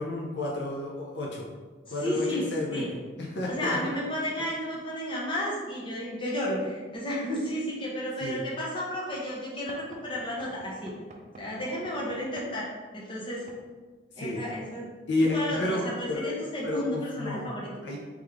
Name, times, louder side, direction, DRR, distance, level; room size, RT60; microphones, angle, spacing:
voice 1, 0.0-1.5 1.9-3.9 8.2-8.4 14.2-14.4 15.1-16.4 16.6-17.5 17.8-18.0, left 2 dB, 65° left, -2 dB, 0.5 m, -31 dB
voice 2, 1.9-2.9 3.5-10.9 11.4-12.7 12.9-13.4 14.2-14.9 15.2-17.7, equal, 25° left, -5 dB, 0.9 m, -32 dB
Knock / Wood, 9.7-12.6 13.5-13.7 14.5-14.7 15.5-15.7, right 2 dB, 40° right, 0.4 m, -48 dB
3.5 x 3.1 x 3.5 m, 1.4 s
head